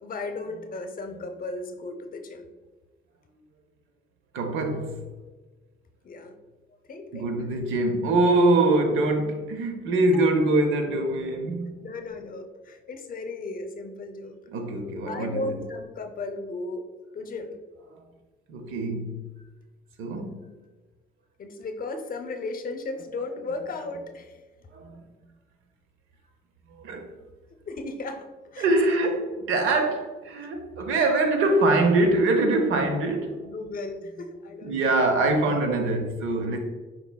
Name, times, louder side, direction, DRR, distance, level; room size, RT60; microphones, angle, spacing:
voice 1, 0.0-2.5 6.0-6.3 6.9-7.3 10.1-10.2 11.8-14.4 15.0-16.8 17.1-17.6 21.4-24.3 24.6-24.7 27.7-28.6 33.4-35.0 36.3-36.4, left 2 dB, 45° left, 0.7 m, -35 dB
voice 2, 4.3-5.0 7.1-11.9 14.5-15.6 17.9-18.0 18.5-19.3 20.0-20.5 24.7-25.0 26.7-27.2 28.6-33.4 34.6-36.6, right 2 dB, 85° right, 0.7 m, -24 dB
5.1 x 4.6 x 2.3 m
cardioid pair, 90°, 20 cm